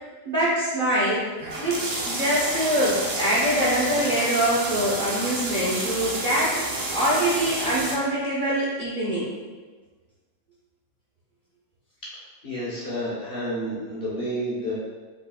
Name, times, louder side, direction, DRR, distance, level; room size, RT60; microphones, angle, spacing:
voice 1, 0.3-1.2 1.6-6.5 6.9-9.3, equal, 35° right, -8 dB, 0.9 m, -24 dB
sound 1, 1.4-7.9, right 2 dB, 75° right, 0.3 m, -30 dB
voice 2, 12.4-14.7, equal, 40° left, -7 dB, 1.1 m, -30 dB
5.7 x 4.0 x 2.3 m, 1.4 s
omnidirectional pair, 1.7 m